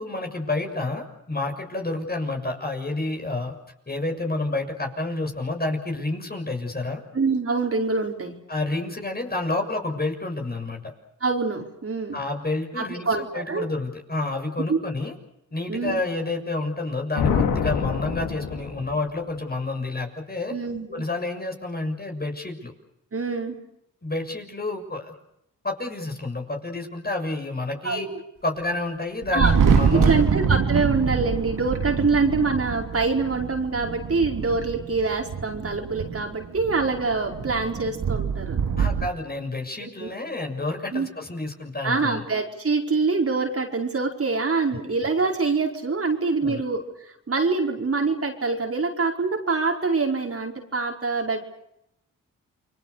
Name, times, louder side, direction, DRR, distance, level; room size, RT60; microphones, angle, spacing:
voice 1, 0.0-3.5 3.9-7.0 8.5-10.8 12.1-15.1 15.5-20.5 20.9-22.7 24.0-25.1 25.6-28.1 28.4-30.3 38.8-42.2 46.4-46.6, left 2 dB, 30° left, 3 dB, 6.8 m, -29 dB
voice 2, 7.1-8.4 11.2-12.2 12.8-13.7 14.7-14.8 15.7-16.0 20.5-21.0 23.1-23.6 27.8-28.2 29.3-29.5 29.9-38.6 39.8-40.1 40.9-41.1 41.8-51.4, right 4 dB, 45° right, 1 dB, 5.0 m, -25 dB
sound 1, 17.1-19.1, left 6 dB, 90° left, 2.7 m, -26 dB
Thunder, 29.2-39.1, right 6 dB, 70° right, 2.7 m, -25 dB
29.5 x 22.5 x 6.8 m, 0.83 s
cardioid pair, 55°, 33 cm